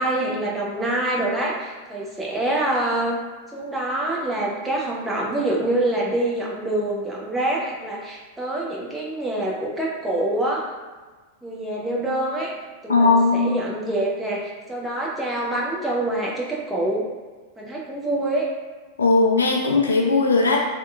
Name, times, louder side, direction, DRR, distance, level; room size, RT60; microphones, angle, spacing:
voice 1, 0.0-3.2 3.5-10.6 11.4-12.5 12.8-17.1 17.6-18.5, right 1 dB, 5° right, -5 dB, 0.6 m, -25 dB
voice 2, 12.9-13.6 19.0-20.6, left 3 dB, 70° left, 0 dB, 0.3 m, -18 dB
2.9 x 2.1 x 2.2 m, 1.3 s
figure-of-eight pair, 90°, 0 cm